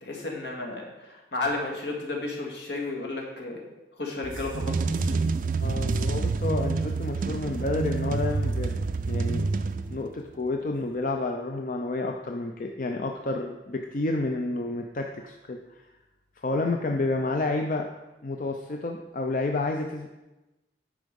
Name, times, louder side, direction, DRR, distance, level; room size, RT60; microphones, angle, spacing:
voice 1, 0.0-3.6 4.0-5.1, left 2 dB, 75° left, 0 dB, 1.9 m, -33 dB
sound 1, 4.2-10.2, right 4 dB, 45° right, 0.4 m, -28 dB
voice 2, 5.0-5.3 5.6-9.5 9.9-15.8 16.4-17.9 18.2-20.1, left 2 dB, 45° left, 3 dB, 0.5 m, -30 dB
9.7 x 4.8 x 5.3 m, 1.0 s
head